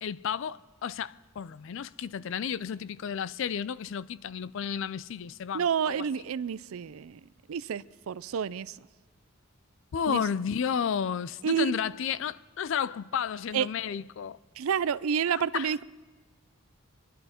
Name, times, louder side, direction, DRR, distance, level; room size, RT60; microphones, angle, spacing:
voice 1, 0.0-6.1 9.9-14.4 15.3-15.7, left 7 dB, 60° left, 0.4 m, -32 dB
voice 2, 5.5-7.2 7.5-8.8 10.1-10.2 11.4-11.8 13.5-13.7 14.6-15.8, right 7 dB, 75° right, 0.4 m, -29 dB
25.0 x 11.0 x 4.4 m
head